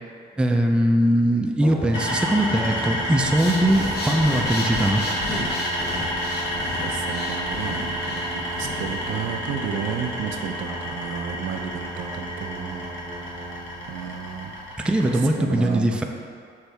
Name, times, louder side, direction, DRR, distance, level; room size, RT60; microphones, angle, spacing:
voice 1, 0.4-5.0 14.8-16.0, right 1 dB, 5° right, 2 dB, 0.3 m, -21 dB
Brass instrument, 1.6-13.9, right 3 dB, 30° left, 1.3 m, -36 dB
sound 1, 1.9-15.2, equal, 70° left, 1.3 m, -30 dB
Breathing, 3.2-9.3, left 2 dB, 55° left, 0.9 m, -34 dB
voice 2, 6.5-13.5 13.9-14.6 15.0-16.0, right 7 dB, 75° right, 4 dB, 0.4 m, -33 dB
5.9 x 2.7 x 3.3 m, 2.4 s
cardioid pair, 90°, 20 cm